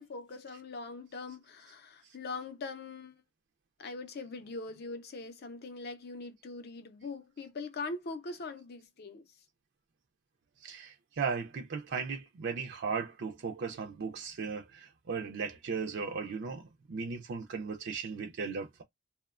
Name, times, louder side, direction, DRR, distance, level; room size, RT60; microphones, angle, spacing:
voice 1, 0.0-3.2 3.8-9.4, left 3 dB, 45° left, 0.5 m, -42 dB
voice 2, 10.6-18.8, right 5 dB, 55° right, 0.4 m, -37 dB
2.8 x 2.1 x 2.3 m
head